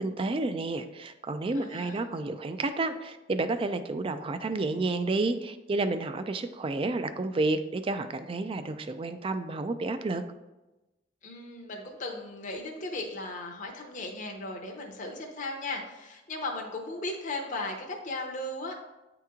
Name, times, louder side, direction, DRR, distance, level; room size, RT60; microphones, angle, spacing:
voice 1, 0.0-10.2, right 3 dB, 30° right, 9 dB, 0.3 m, -30 dB
voice 2, 1.5-2.0 11.2-18.8, left 2 dB, 45° left, 1 dB, 0.7 m, -36 dB
8.8 x 3.0 x 3.6 m, 1.0 s
head